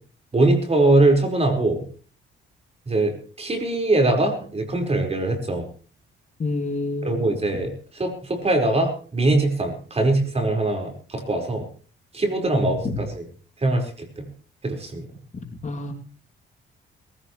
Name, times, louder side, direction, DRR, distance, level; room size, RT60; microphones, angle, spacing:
voice 1, 0.3-1.8 2.9-5.7 7.0-11.7 12.1-13.3 13.6-14.2 14.6-15.1, right 2 dB, 30° right, 4 dB, 4.9 m, -22 dB
voice 2, 6.4-7.3 12.5-12.7 15.6-15.9, left 2 dB, 35° left, 3 dB, 2.9 m, -28 dB
21.5 x 15.5 x 3.2 m, 0.41 s
cardioid pair, 90°, 20 cm